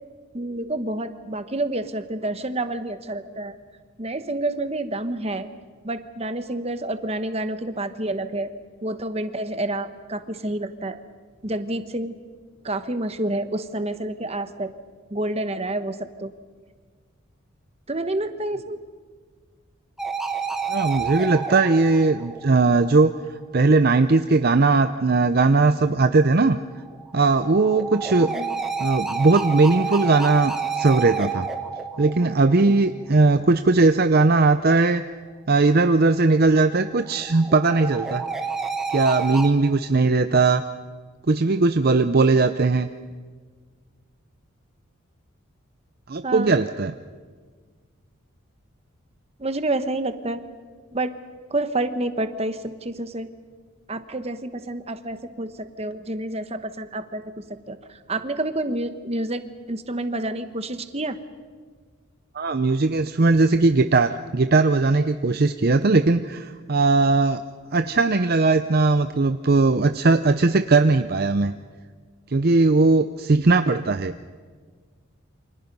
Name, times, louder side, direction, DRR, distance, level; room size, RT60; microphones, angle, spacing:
voice 1, 0.3-3.5 4.0-5.5 5.8-8.5 8.8-11.0 11.4-12.1 12.6-14.7 15.1-16.3 17.9-18.8 28.3-28.6 46.2-46.6 49.4-50.4 50.9-51.1 51.5-53.3 53.9-57.3 57.7-59.4 59.7-61.2, right 2 dB, 30° right, 10 dB, 1.2 m, -28 dB
sound 1, 20.0-23.0 26.6-33.0 36.6-39.5, right 5 dB, ahead, 1.7 m, -30 dB
voice 2, 20.7-26.6 27.1-28.4 28.8-31.5 32.0-35.0 35.5-38.2 38.9-40.6 41.3-42.9 46.1-46.9 62.3-67.4 67.7-71.5 72.3-74.1, right 3 dB, 45° right, 9 dB, 0.6 m, -19 dB
29.0 x 25.5 x 5.4 m, 1.5 s
head